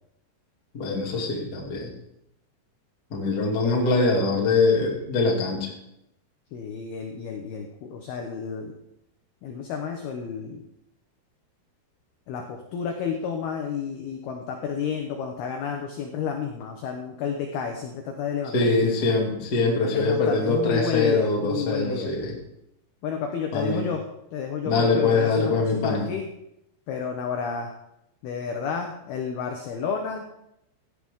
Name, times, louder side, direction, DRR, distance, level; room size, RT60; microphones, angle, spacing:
voice 1, 0.7-1.9 3.1-5.7 18.5-22.3 23.5-23.8 24.6-26.1, left 3 dB, 35° left, -2 dB, 1.6 m, -23 dB
voice 2, 6.5-8.7 9.4-10.6 12.3-18.9 19.9-22.1 23.0-24.0 24.3-26.3 26.9-27.7 28.2-30.3, left 6 dB, 80° left, 3 dB, 2.2 m, -31 dB
16.5 x 11.5 x 3.7 m, 0.81 s
omnidirectional pair, 6.0 m